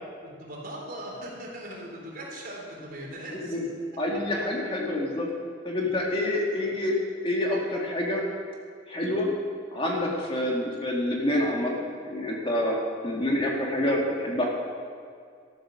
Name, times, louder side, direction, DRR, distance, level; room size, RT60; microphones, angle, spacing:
voice 1, 0.2-3.6 6.4-6.5, right 1 dB, 50° right, -3 dB, 3.8 m, -39 dB
voice 2, 3.3-3.6 4.0-5.3 5.6-7.0 7.2-8.2 8.9-9.3 9.7-14.5, left 1 dB, 30° left, -2 dB, 2.0 m, -27 dB
13.5 x 11.0 x 6.4 m, 2.2 s
head